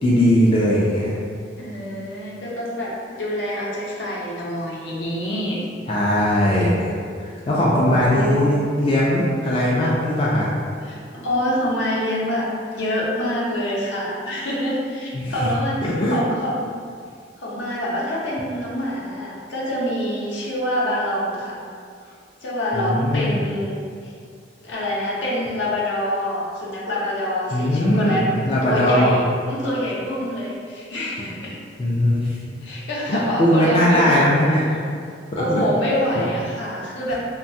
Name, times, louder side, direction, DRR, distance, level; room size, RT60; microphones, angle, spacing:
voice 1, 0.0-1.1 5.9-6.9 7.2-10.5 15.1-15.5 15.8-16.2 22.7-23.4 27.5-29.1 31.8-32.3 33.1-35.0 35.3-35.6 36.2-36.3 37.1-37.2, left 1 dB, 30° left, -6 dB, 0.3 m, -19 dB
voice 2, 1.6-5.7 7.7-8.5 10.8-16.7 17.4-21.6 22.0-22.1 22.4-24.1 24.6-28.3 28.6-31.6 32.2-34.2 35.4-37.1, equal, 70° left, -5 dB, 0.6 m, -26 dB
3.0 x 2.2 x 2.6 m, 2.2 s
head